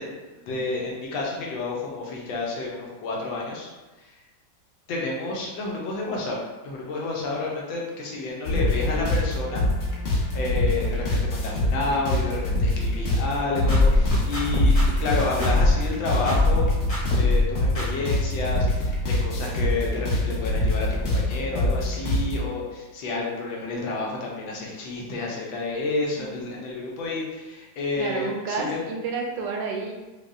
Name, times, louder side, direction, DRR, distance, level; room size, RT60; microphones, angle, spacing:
voice 1, 0.0-3.7 4.0-4.2 4.9-9.6 10.3-16.7 17.2-28.8, left 3 dB, 90° left, -2 dB, 1.5 m, -30 dB
sound 1, 8.5-22.4, left 1 dB, 70° left, 0.5 m, -25 dB
sound 2, 13.7-15.8 16.2-16.6 16.9-17.5 17.7-17.8, left 2 dB, 30° left, 0.7 m, -21 dB
voice 2, 28.0-29.9, right 4 dB, 75° right, 1 dB, 1.2 m, -30 dB
5.0 x 2.1 x 2.5 m, 1.2 s
omnidirectional pair, 2.1 m